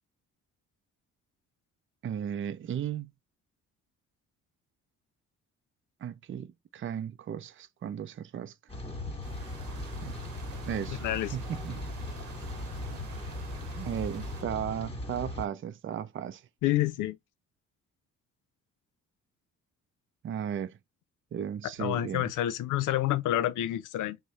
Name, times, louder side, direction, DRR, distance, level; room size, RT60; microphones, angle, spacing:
voice 1, 2.0-3.1 6.0-8.5 10.0-10.2 10.7-11.0 11.3-11.9 13.8-16.5 20.2-20.8 21.3-22.3, right 9 dB, 40° right, 0.5 m, -35 dB
Rain, 8.7-15.5, left 1 dB, 20° left, 1.5 m, -38 dB
sound 1, 9.2-14.4, right 8 dB, 70° right, 1.0 m, -50 dB
voice 2, 11.0-11.4 16.6-17.2 21.8-24.2, left 13 dB, 85° left, 0.6 m, -28 dB
4.8 x 2.2 x 4.1 m
cardioid pair, 90°, 30 cm